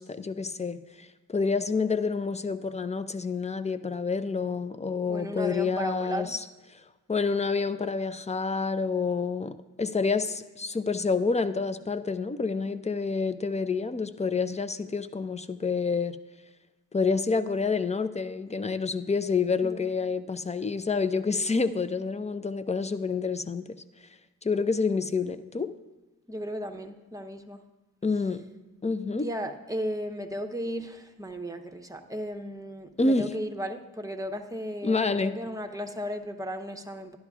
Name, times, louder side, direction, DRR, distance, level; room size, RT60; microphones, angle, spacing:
voice 1, 0.0-6.4 7.1-16.2 16.9-23.6 24.4-25.7 28.0-28.4 28.8-29.3 33.0-33.3 34.8-35.4, left 4 dB, 20° left, 11 dB, 0.5 m, -28 dB
voice 2, 5.1-6.3 19.6-19.8 26.3-27.6 29.2-37.2, equal, 10° right, 4 dB, 0.8 m, -35 dB
12.0 x 11.0 x 2.4 m, 1.2 s
cardioid pair, 55°, 35 cm